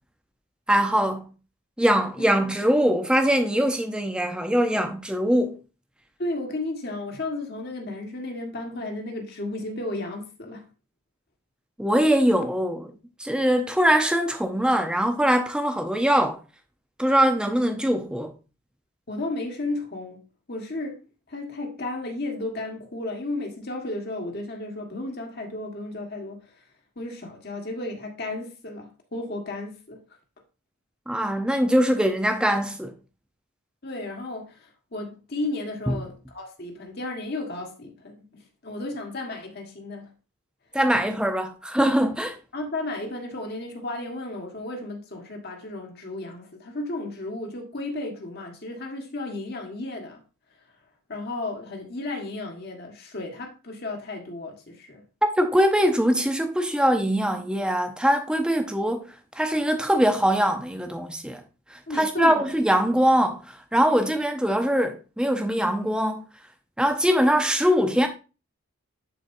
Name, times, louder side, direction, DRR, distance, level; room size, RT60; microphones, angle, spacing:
voice 1, 0.7-1.3 1.8-5.6 11.8-12.9 13.2-16.4 17.0-18.3 31.1-33.0 35.9-36.0 40.7-42.4 55.4-59.0 59.4-61.4 61.7-63.4 63.7-66.2 66.8-68.1, equal, 5° right, 0.7 m, -22 dB
voice 2, 2.2-2.5 6.2-10.7 19.1-20.2 20.5-21.0 21.3-26.6 26.9-30.0 33.8-40.1 42.5-50.2 51.1-55.0 61.9-62.5, left 2 dB, 45° left, 1.6 m, -33 dB
11.0 x 4.5 x 2.7 m
head